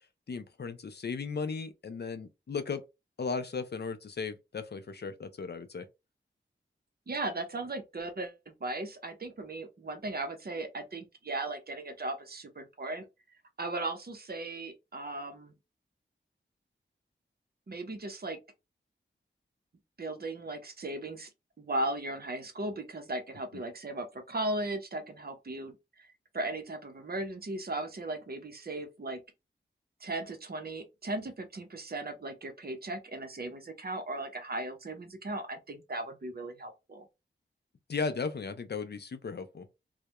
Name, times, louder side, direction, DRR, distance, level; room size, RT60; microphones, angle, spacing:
voice 1, 0.3-2.8 3.2-5.9 37.9-39.7, left 5 dB, 55° left, 0.4 m, -36 dB
voice 2, 7.1-13.1 13.6-15.5 17.7-18.4 20.0-21.3 21.6-26.1 26.3-29.2 30.0-37.1, right 2 dB, 50° right, 0.6 m, -37 dB
2.3 x 2.1 x 2.8 m
wide cardioid pair, 80°, 21 cm